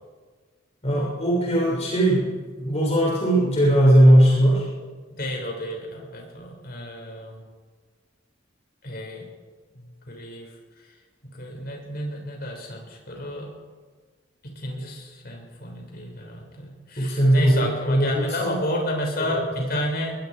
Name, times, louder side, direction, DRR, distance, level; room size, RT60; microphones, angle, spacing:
voice 1, 0.8-2.3 2.6-4.6 17.0-18.6 19.2-19.6, right 1 dB, 35° left, -5 dB, 6.7 m, -19 dB
voice 2, 5.2-7.4 8.8-9.3 10.1-10.5 11.3-13.5 14.4-20.2, left 1 dB, 55° left, 0 dB, 6.7 m, -31 dB
23.5 x 22.5 x 5.1 m, 1.5 s
head